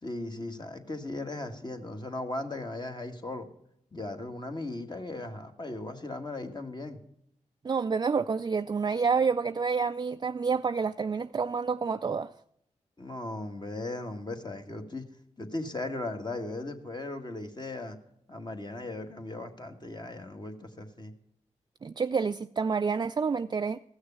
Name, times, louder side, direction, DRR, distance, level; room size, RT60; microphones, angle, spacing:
voice 1, 0.0-3.5 3.9-7.0 13.0-15.0 15.4-18.0 18.3-21.1, left 2 dB, 35° left, 1.6 m, -37 dB
voice 2, 7.6-12.3 21.8-23.8, right 5 dB, 35° right, 0.4 m, -28 dB
14.5 x 6.4 x 7.0 m
cardioid pair, 45°, 13 cm